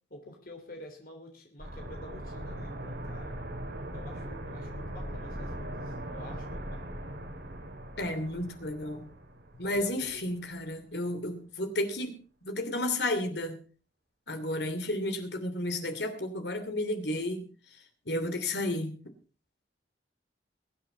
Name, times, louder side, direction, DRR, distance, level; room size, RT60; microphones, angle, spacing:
voice 1, 0.1-3.4 3.9-7.1 9.6-10.2, left 1 dB, 55° left, 3 dB, 3.4 m, -49 dB
sound 1, 1.6-10.3 10.6-10.7, right 1 dB, 75° right, 4.0 m, -40 dB
voice 2, 8.0-9.1 9.6-12.2 12.4-13.6 14.3-17.5 18.1-18.9, left 1 dB, 70° left, 7 dB, 2.9 m, -32 dB
22.5 x 9.1 x 4.0 m, 0.37 s
head